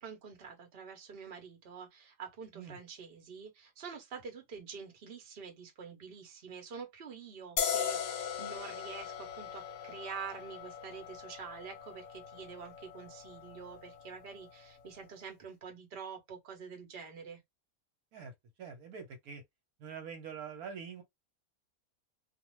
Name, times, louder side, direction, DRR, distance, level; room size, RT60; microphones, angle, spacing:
voice 1, 0.0-17.4, right 6 dB, 45° right, 1.0 m, -47 dB
sound 1, 7.6-14.9, left 8 dB, 60° left, 0.9 m, -39 dB
voice 2, 18.6-19.4 19.8-21.0, right 6 dB, 80° right, 1.3 m, -44 dB
2.5 x 2.4 x 3.0 m
omnidirectional pair, 1.5 m